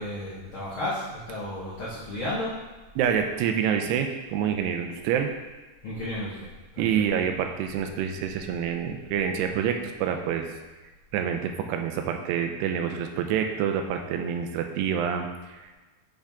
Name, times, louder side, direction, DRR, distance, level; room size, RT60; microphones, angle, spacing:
voice 1, 0.0-2.5 5.8-6.5 7.0-7.1, left 1 dB, 70° left, -9 dB, 1.2 m, -33 dB
voice 2, 3.0-5.3 6.8-10.5 11.1-15.8, right 8 dB, 85° right, 5 dB, 2.7 m, -27 dB
9.0 x 5.0 x 3.5 m, 1.2 s
omnidirectional pair, 4.7 m